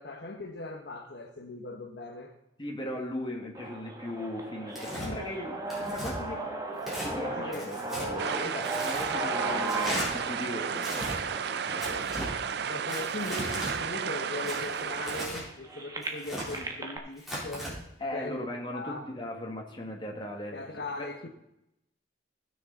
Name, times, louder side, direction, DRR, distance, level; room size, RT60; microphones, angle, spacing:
voice 1, 0.0-2.3 7.4-7.9 12.7-17.8 18.0-19.1 20.5-21.3, left 2 dB, 60° left, 4 dB, 0.9 m, -39 dB
voice 2, 2.6-6.4 7.0-11.1 11.6-12.3 18.0-20.6 21.0-21.3, left 1 dB, 25° left, 0 dB, 1.7 m, -38 dB
sound 1, 3.5-13.5 14.2-14.3 14.5-17.0, right 2 dB, 20° right, 1.2 m, -37 dB
Tearing, 4.7-5.1 5.7-6.1 6.8-7.1 7.5-8.1 8.6-9.1 9.7-10.1 10.8-11.2 11.8-12.3 12.9-13.7 14.5-15.4 16.0-16.6 17.2-17.7, equal, ahead, 3.6 m, -36 dB
sound 2, 8.2-15.3, right 7 dB, 60° right, 0.4 m, -33 dB
15.5 x 6.4 x 4.0 m, 0.85 s
head